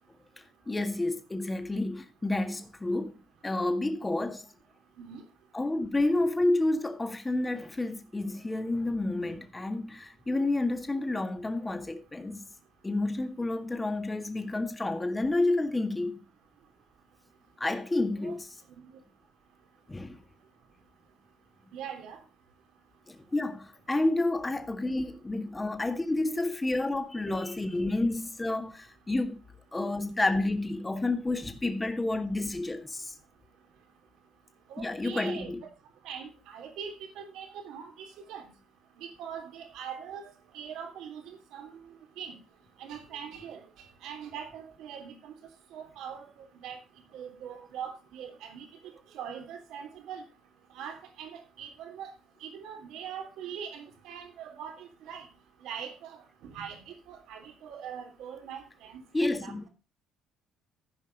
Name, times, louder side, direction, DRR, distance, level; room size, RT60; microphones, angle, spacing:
voice 1, 0.4-3.2 3.4-4.5 5.5-12.5 12.8-16.2 17.6-18.5 19.9-20.2 23.1-29.4 29.7-33.2 34.8-35.6 59.1-59.7, left 2 dB, 15° left, 1.8 m, -30 dB
voice 2, 21.7-22.2 34.7-35.5 36.0-38.5 39.0-41.7 42.2-42.3 42.8-43.6 44.0-45.3 45.7-46.8 47.1-48.7 49.1-50.2 50.7-52.1 52.4-55.3 55.6-56.2 56.4-59.0 59.4-59.5, right 8 dB, 75° right, 3.1 m, -42 dB
14.5 x 5.3 x 5.2 m
cardioid pair, 95°, 0 cm